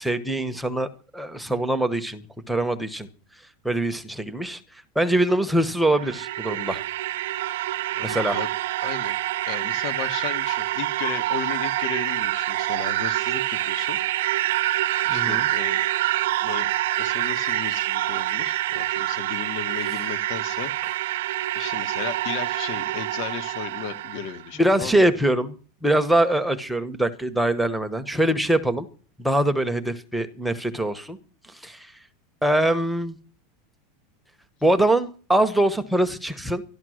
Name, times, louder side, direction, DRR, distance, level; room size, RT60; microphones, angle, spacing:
voice 1, 0.0-2.2 2.5-3.1 3.6-4.6 4.9-6.8 8.0-8.4 15.1-15.4 24.6-25.6 25.8-28.9 29.2-31.2 31.5-31.9 32.4-33.2 34.6-36.6, right 1 dB, ahead, 7 dB, 1.0 m, -23 dB
sound 1, 5.7-24.4, right 15 dB, 75° right, 0.7 m, -26 dB
voice 2, 7.9-8.5 8.8-9.1 9.5-14.0 15.0-15.9 16.4-16.7 17.0-20.7 21.5-25.1, left 8 dB, 55° left, 11 dB, 1.5 m, -35 dB
13.0 x 12.5 x 6.4 m, 0.40 s
supercardioid pair, 140°, 0 cm